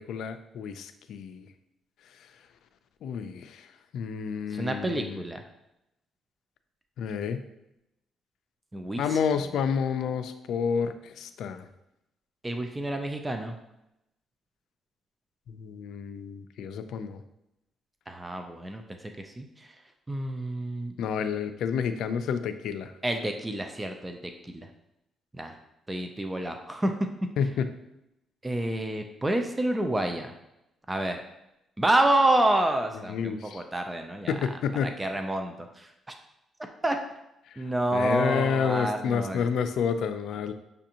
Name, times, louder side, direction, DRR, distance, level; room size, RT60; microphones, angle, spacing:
voice 1, 0.0-1.5 3.0-3.7 3.9-5.2 7.0-7.4 9.0-11.7 15.5-17.2 21.0-22.9 27.4-27.7 33.1-33.6 34.3-34.9 37.5-37.6 37.9-40.5, left 6 dB, 75° left, 9 dB, 0.3 m, -29 dB
voice 2, 4.5-5.4 8.7-9.2 12.4-13.5 18.1-19.7 20.1-20.9 23.0-24.7 25.4-25.6 25.9-26.9 28.4-30.3 30.9-31.2 31.8-34.3 34.8-35.9 36.8-37.0 37.6-39.5, right 1 dB, 15° right, 5 dB, 0.4 m, -28 dB
6.6 x 2.5 x 2.8 m, 0.87 s
cardioid pair, 90°, 0 cm